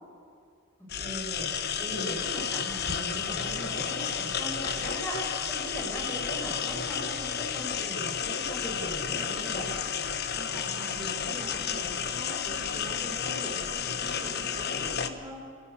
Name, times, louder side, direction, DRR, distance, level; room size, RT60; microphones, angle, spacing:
sound 1, 0.9-15.1, left 7 dB, 50° left, 1.1 m, -32 dB
voice 1, 0.9-9.7, equal, 10° left, -3 dB, 6.5 m, -39 dB
voice 2, 10.3-15.4, equal, 15° right, -5 dB, 4.4 m, -43 dB
27.0 x 14.0 x 8.4 m, 2.3 s
head